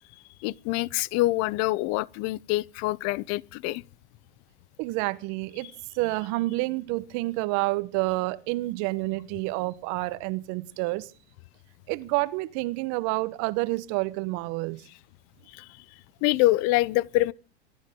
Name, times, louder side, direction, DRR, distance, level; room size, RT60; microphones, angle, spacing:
voice 1, 0.4-3.8 15.5-15.6 16.2-17.3, left 19 dB, 50° left, 0.7 m, -25 dB
voice 2, 4.8-11.1 11.9-14.8, right 21 dB, 55° right, 1.2 m, -29 dB
25.0 x 11.5 x 3.8 m
hypercardioid pair, 100°, 34 cm